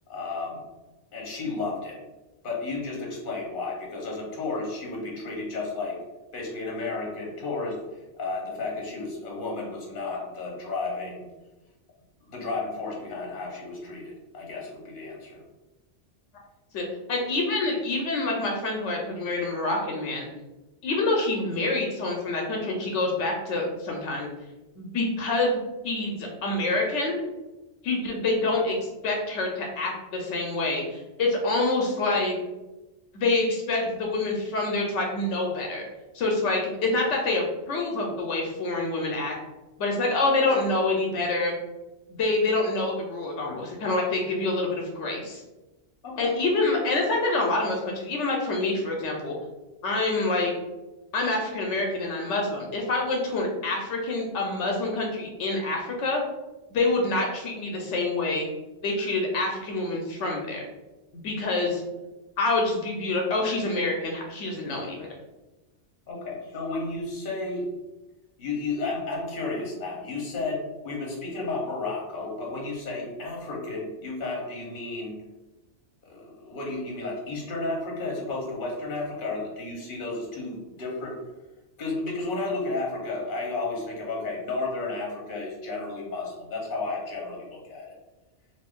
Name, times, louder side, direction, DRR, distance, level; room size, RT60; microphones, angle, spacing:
voice 1, 0.1-0.6 1.1-2.0 2.4-6.0 6.3-11.2 12.2-15.4 46.0-46.4 66.1-67.7 68.4-75.2 76.0-81.2 81.8-87.9, left 3 dB, 50° left, -3 dB, 1.0 m, -32 dB
voice 2, 16.7-20.3 20.8-24.3 24.8-25.6 25.8-27.2 27.8-32.4 33.1-35.9 36.1-39.4 39.8-41.5 42.1-45.4 46.2-49.3 49.8-50.5 51.1-56.2 56.7-58.5 58.8-60.6 61.1-61.8 62.4-65.1, left 2 dB, 80° left, 0 dB, 0.9 m, -26 dB
2.8 x 2.5 x 3.5 m, 1.1 s
omnidirectional pair, 1.2 m